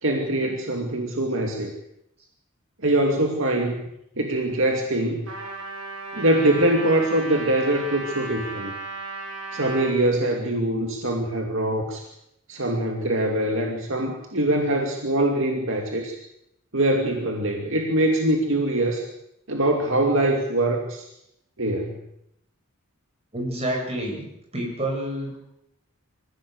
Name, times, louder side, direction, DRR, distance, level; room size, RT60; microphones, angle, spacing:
voice 1, 0.0-1.7 2.8-3.7 4.2-5.3 6.1-8.7 9.5-12.1 12.5-16.2 16.7-19.0 19.5-21.0 21.6-22.0, right 1 dB, 60° right, 2 dB, 2.5 m, -23 dB
Trumpet, 5.3-9.9, right 3 dB, 80° right, 7.5 m, -35 dB
voice 2, 23.3-24.3 24.5-25.4, right 1 dB, 30° right, 0 dB, 7.7 m, -28 dB
25.5 x 16.5 x 8.1 m, 0.81 s
head